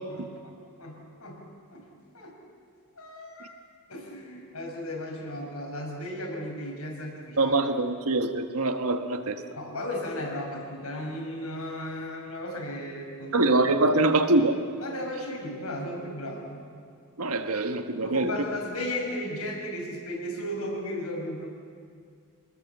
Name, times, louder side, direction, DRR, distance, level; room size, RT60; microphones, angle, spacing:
voice 1, 0.1-1.4 1.7-1.9 2.1-2.4 3.0-3.6 3.9-7.5 9.6-13.5 14.8-16.7 18.0-21.5, left 1 dB, 85° left, 0 dB, 6.1 m, -35 dB
voice 2, 7.4-9.4 13.3-14.6 17.2-18.3, right 2 dB, 85° right, 7 dB, 1.4 m, -24 dB
27.0 x 20.0 x 7.4 m, 2.2 s
head